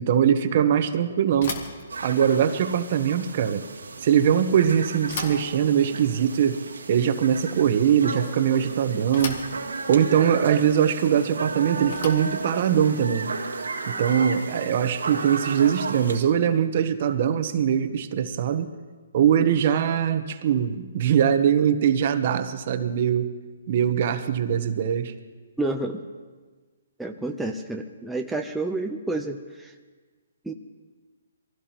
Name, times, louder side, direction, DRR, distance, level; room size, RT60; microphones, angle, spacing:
voice 1, 0.0-1.6 2.0-3.6 4.0-6.6 6.9-9.4 9.9-13.3 13.9-18.7 19.1-23.3 23.7-25.1, right 8 dB, 45° right, 9 dB, 1.0 m, -22 dB
Bicycle / Thump thud, 1.3-14.4, left 4 dB, 60° left, 1.9 m, -41 dB
sound 1, 1.9-16.2, right 4 dB, 90° right, 1.8 m, -34 dB
voice 2, 25.6-26.0 27.0-29.7 30.4-30.5, right 2 dB, 5° right, 1 dB, 0.6 m, -29 dB
23.5 x 16.0 x 3.0 m, 1.4 s
hypercardioid pair, 150°, 0 cm